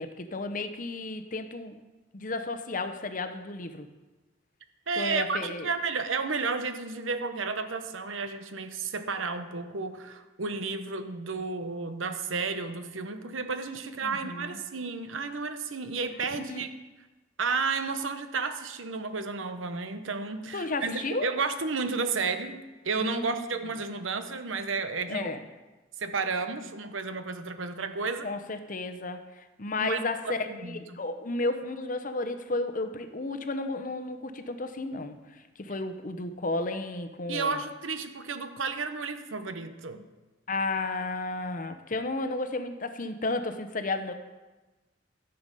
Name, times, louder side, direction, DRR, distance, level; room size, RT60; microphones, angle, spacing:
voice 1, 0.0-1.8 2.1-3.9 5.0-5.7 14.0-14.6 16.5-16.6 20.5-21.3 23.0-23.5 25.1-25.4 28.2-37.6 40.5-44.1, left 2 dB, 45° left, 9 dB, 0.8 m, -33 dB
voice 2, 4.9-16.7 17.4-25.4 26.0-28.3 29.8-30.0 30.5-31.0 37.3-40.0, right 4 dB, 90° right, 9 dB, 1.0 m, -32 dB
14.0 x 6.9 x 5.4 m, 1.2 s
head